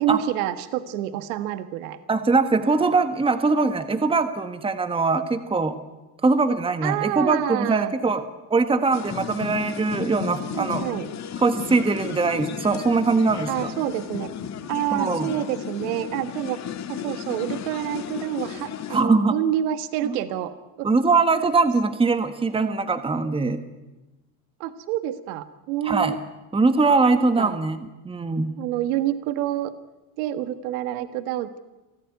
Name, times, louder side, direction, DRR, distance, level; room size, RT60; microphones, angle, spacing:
voice 1, 0.0-2.0 6.8-7.9 10.5-11.1 13.5-14.3 14.7-16.6 16.9-20.9 24.6-26.2 27.1-27.6 28.6-29.7 30.2-31.6, right 12 dB, 80° right, 12 dB, 1.5 m, -28 dB
voice 2, 2.1-5.8 6.2-8.2 8.5-10.9 11.4-13.7 14.9-15.3 18.9-19.3 20.0-20.2 20.8-23.6 25.8-26.1 26.5-28.5, right 3 dB, 15° right, 10 dB, 1.4 m, -22 dB
sound 1, 8.9-19.0, left 8 dB, 40° left, 1.9 m, -34 dB
26.5 x 15.0 x 9.5 m, 1.1 s
supercardioid pair, 110°, 43 cm